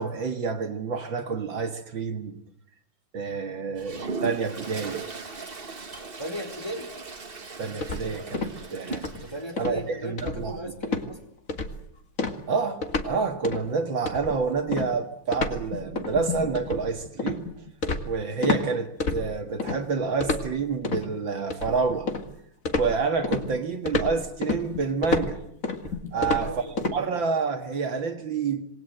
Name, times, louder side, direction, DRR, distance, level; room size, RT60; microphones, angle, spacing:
voice 1, 0.0-2.4 3.1-5.0 7.6-9.1 9.6-10.6 12.5-17.4 18.0-22.1 22.7-25.4 26.1-26.5 26.9-28.6, right 5 dB, 65° right, 2.6 m, -28 dB
Toilet flush, 3.8-9.6, right 4 dB, 30° right, 1.8 m, -38 dB
voice 2, 6.2-6.9 9.1-11.3 26.1-27.2, equal, 10° left, 4.5 m, -37 dB
sound 1, 7.8-8.6 8.9-9.2 9.6-9.8 10.2-10.6 10.8-11.1 11.5-11.8 12.2-13.1 13.4-13.7 14.1-18.7 19.0-19.8 20.2-21.1 21.5-22.3 22.7-27.0, left 3 dB, 40° left, 2.5 m, -29 dB
27.5 x 21.0 x 8.0 m
omnidirectional pair, 2.3 m